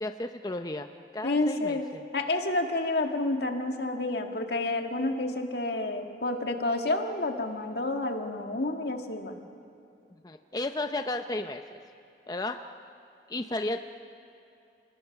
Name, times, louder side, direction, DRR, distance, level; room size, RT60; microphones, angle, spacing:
voice 1, 0.0-2.0 10.2-11.8 12.3-12.6 13.3-13.8, left 2 dB, 20° left, 6 dB, 0.6 m, -33 dB
voice 2, 1.2-1.9 2.1-9.4, left 2 dB, 70° left, 4 dB, 1.8 m, -29 dB
29.5 x 20.0 x 5.9 m, 2.7 s
head